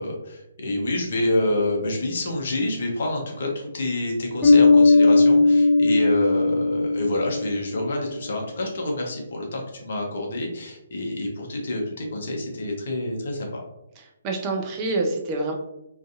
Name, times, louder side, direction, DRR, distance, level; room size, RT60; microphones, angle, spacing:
voice 1, 0.0-13.6, left 1 dB, 55° left, 0 dB, 0.7 m, -27 dB
Bass guitar, 4.4-7.9, left 3 dB, ahead, 0.8 m, -17 dB
voice 2, 14.0-15.5, right 2 dB, 25° right, 1 dB, 0.4 m, -27 dB
2.5 x 2.4 x 2.5 m, 0.87 s
figure-of-eight pair, 135°, 0 cm